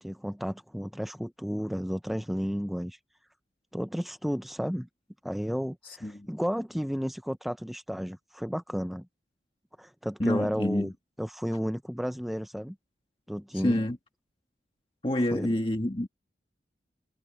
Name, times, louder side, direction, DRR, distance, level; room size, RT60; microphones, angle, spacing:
voice 1, 0.0-3.0 3.7-4.9 5.2-9.1 9.8-10.9 11.2-12.8 13.3-13.8 15.3-15.5, equal, ahead, 0.5 m, -32 dB
voice 2, 10.2-10.9 13.5-14.0 15.0-16.1, left 1 dB, 30° left, 1.7 m, -27 dB
head